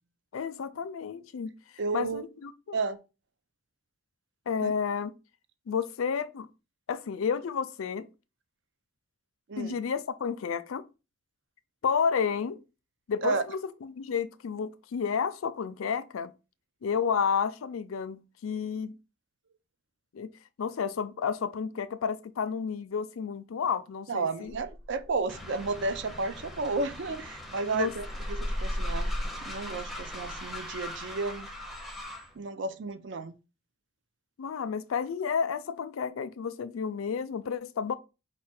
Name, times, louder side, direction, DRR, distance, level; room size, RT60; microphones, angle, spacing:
voice 1, 0.3-1.5 1.9-2.8 4.5-5.1 5.7-6.5 6.9-8.1 9.6-10.8 11.8-12.6 13.1-16.3 16.8-19.0 20.1-20.3 20.6-24.5 27.7-27.9 34.4-38.0, left 6 dB, 90° left, 0.4 m, -31 dB
voice 2, 1.8-2.2 2.7-3.0 4.6-4.7 9.5-9.8 13.2-13.4 24.1-29.1 29.4-31.5 32.4-33.3, right 3 dB, 60° right, 0.5 m, -32 dB
sound 1, 24.5-27.5 27.8-32.0, equal, 80° right, 0.8 m, -37 dB
Train, 25.3-32.3, left 1 dB, ahead, 0.6 m, -42 dB
4.7 x 2.2 x 4.2 m
head